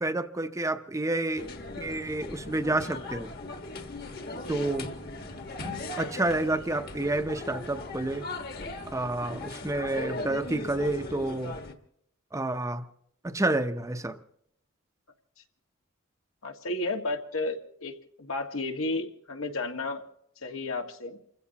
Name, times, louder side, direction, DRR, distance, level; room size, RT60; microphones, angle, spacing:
voice 1, 0.0-1.5 1.8-3.3 4.5-4.9 6.0-8.3 8.9-11.6 12.3-12.8 13.2-14.2, right 2 dB, 15° right, 0.7 m, -29 dB
sound 1, 1.4-11.7, left 2 dB, 45° left, 1.5 m, -38 dB
voice 2, 16.4-20.0 20.4-21.2, left 2 dB, 80° left, 1.7 m, -33 dB
29.0 x 15.5 x 2.9 m
head